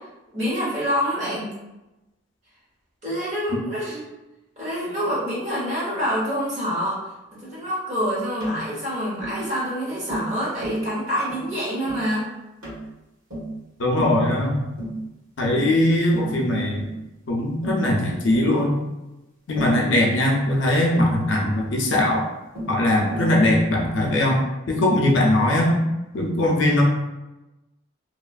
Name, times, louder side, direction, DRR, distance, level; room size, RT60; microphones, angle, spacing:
voice 1, 0.3-1.5 3.0-4.1 4.6-7.0 7.4-12.3, equal, 35° right, -8 dB, 1.1 m, -26 dB
Tap, 8.4-8.6 9.2-9.4 10.1-10.3 10.6-10.8 11.3-11.5 11.9-12.1 12.6-12.8 13.3-13.5 14.0-14.2 14.8-15.0 15.4-15.7 16.1-16.3 16.8-17.0 17.6-17.9 18.3-18.5 19.6-19.8 20.9-21.1 21.9-22.2 22.5-22.8 23.1-23.3, right 1 dB, 85° right, 1.3 m, -32 dB
voice 2, 13.8-14.6 15.4-16.9 17.3-18.7 19.5-22.2 22.7-24.4 24.7-25.7 26.1-26.8, left 1 dB, 60° left, -1 dB, 0.5 m, -20 dB
2.9 x 2.3 x 2.4 m, 1.0 s
head